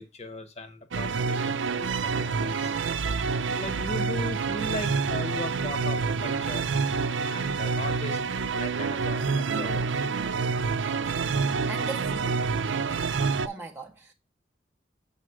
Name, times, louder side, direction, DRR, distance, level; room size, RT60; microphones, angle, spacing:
voice 1, 0.0-2.7 3.5-6.7 7.2-8.2 8.5-9.9 12.7-12.9, left 2 dB, 35° left, 1.1 m, -38 dB
sound 1, 0.9-13.5, right 5 dB, 85° right, 0.5 m, -27 dB
voice 2, 11.7-12.5 13.4-14.1, right 3 dB, 15° right, 0.6 m, -38 dB
7.4 x 4.2 x 4.8 m
head